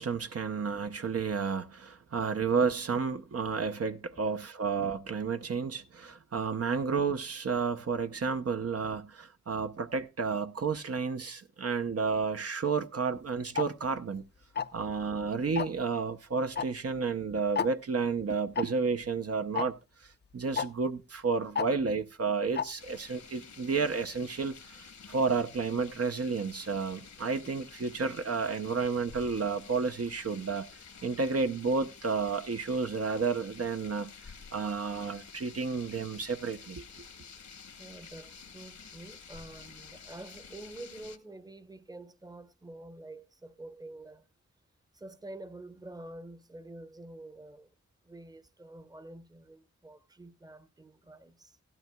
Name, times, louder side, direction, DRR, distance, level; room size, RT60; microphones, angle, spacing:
voice 1, 0.0-14.2 14.7-19.8 20.0-30.7 31.0-34.1 34.5-36.8, right 5 dB, 55° right, 0.7 m, -31 dB
Tick-tock, 13.6-13.7 14.6-14.8 15.6-15.8 16.6-16.7 16.9-17.0 17.6-17.7 18.6-18.7 19.6-19.7 20.6-20.7 21.6-21.7 22.6-22.7, left 7 dB, 35° left, 0.5 m, -30 dB
sound 1, 22.8-41.2, left 6 dB, 75° left, 1.2 m, -51 dB
voice 2, 37.8-44.3 44.9-47.7 48.0-51.6, right 2 dB, 15° right, 0.8 m, -47 dB
16.0 x 12.0 x 2.2 m
wide cardioid pair, 70°, 29 cm